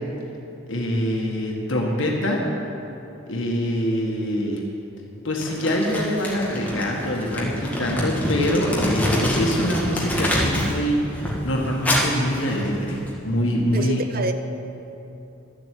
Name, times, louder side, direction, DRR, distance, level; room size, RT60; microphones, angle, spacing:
voice 1, 0.7-2.4 3.3-4.6 5.2-14.0, equal, 70° left, -1 dB, 1.8 m, -24 dB
Crumpling crinkling, 5.4-10.8 11.1-13.1, equal, 10° left, 1.9 m, -26 dB
voice 2, 13.7-14.3, right 1 dB, 45° right, 8 dB, 0.8 m, -27 dB
12.5 x 8.1 x 8.4 m, 2.9 s
head